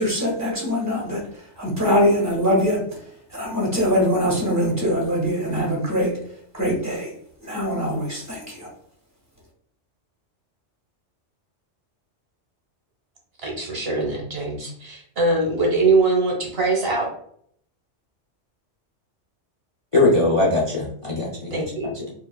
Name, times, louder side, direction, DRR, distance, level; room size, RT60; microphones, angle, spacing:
voice 1, 0.0-3.0 3.3-6.2 6.5-7.1 7.4-8.7, equal, 15° right, -3 dB, 1.5 m, -23 dB
voice 2, 13.4-17.1 21.5-21.9, right 3 dB, 55° right, -1 dB, 1.2 m, -22 dB
voice 3, 19.9-22.1, left 2 dB, 35° left, -3 dB, 0.6 m, -21 dB
4.7 x 2.8 x 2.3 m, 0.64 s
omnidirectional pair, 1.2 m